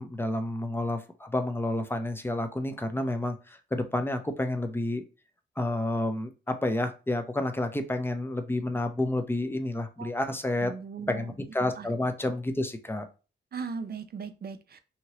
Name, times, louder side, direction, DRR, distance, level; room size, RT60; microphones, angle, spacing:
voice 1, 0.0-5.0 5.6-10.7 11.1-13.1, left 1 dB, 10° left, 7 dB, 0.5 m, -30 dB
voice 2, 10.6-11.3 11.8-11.9 13.5-14.8, right 5 dB, 50° right, 10 dB, 0.5 m, -38 dB
2.8 x 2.7 x 3.0 m, 0.32 s
cardioid pair, 90°, 20 cm